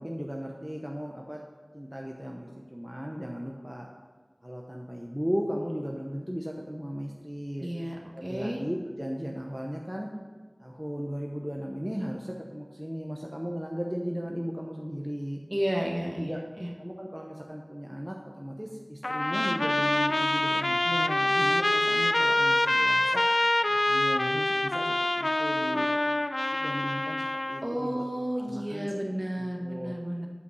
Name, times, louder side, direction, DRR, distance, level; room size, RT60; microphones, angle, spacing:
voice 1, 0.0-1.4 1.7-3.9 4.4-7.7 8.1-10.1 10.6-15.4 16.2-16.4 16.8-23.2 23.7-25.9 26.5-28.0 28.4-29.0 29.3-29.9, equal, 10° right, 0 dB, 0.8 m, -36 dB
voice 2, 7.6-8.6 15.5-16.3 16.6-16.7 27.6-30.3, equal, 35° right, 0 dB, 1.3 m, -32 dB
Trumpet, 19.0-27.7, left 1 dB, 55° left, 0.3 m, -26 dB
8.5 x 5.0 x 6.3 m, 1.4 s
wide cardioid pair, 40°, 0 cm